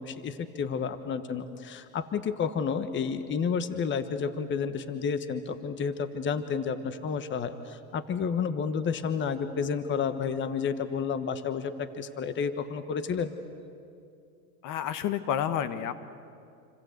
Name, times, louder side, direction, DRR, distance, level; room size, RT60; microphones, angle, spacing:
voice 1, 0.0-13.3, left 6 dB, 25° left, 11 dB, 1.3 m, -31 dB
voice 2, 14.6-15.9, left 9 dB, 45° left, 12 dB, 1.4 m, -29 dB
28.5 x 25.5 x 8.1 m, 2.5 s
supercardioid pair, 120°, 43 cm